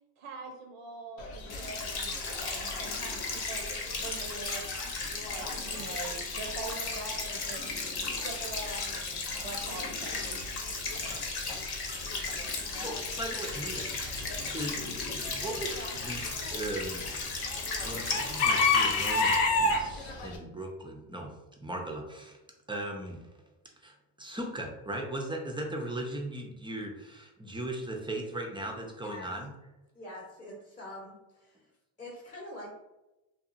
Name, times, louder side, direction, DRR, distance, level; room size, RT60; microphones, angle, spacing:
voice 1, 0.2-3.7 4.0-4.6 5.0-7.9 8.2-10.4, right 3 dB, 75° right, 1 dB, 0.7 m, -43 dB
Chicken rooster / Bird, 1.2-20.4, left 3 dB, 85° left, 0.6 m, -34 dB
sound 1, 1.5-19.4, left 3 dB, 55° left, 0.9 m, -36 dB
voice 2, 12.8-13.9 14.5-17.1 17.8-21.3 21.6-22.4 22.7-23.2 23.8-29.5, right 1 dB, 10° right, 1 dB, 0.4 m, -38 dB
voice 3, 29.9-31.6 32.0-32.7, left 1 dB, 15° left, -4 dB, 0.8 m, -44 dB
2.8 x 2.3 x 2.5 m, 0.99 s
supercardioid pair, 70°, 48 cm